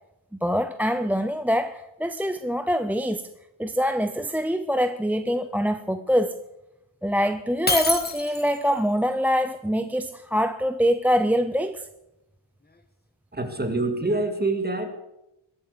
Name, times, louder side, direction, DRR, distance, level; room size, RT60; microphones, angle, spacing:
voice 1, 0.4-3.3 3.6-6.4 7.0-11.8, equal, 5° right, 0.4 m, -24 dB
Shatter, 7.7-8.7, left 2 dB, 20° left, 1.3 m, -25 dB
voice 2, 13.3-15.0, right 2 dB, 20° right, 1.8 m, -26 dB
22.0 x 7.9 x 6.8 m
wide cardioid pair, 145°, 49 cm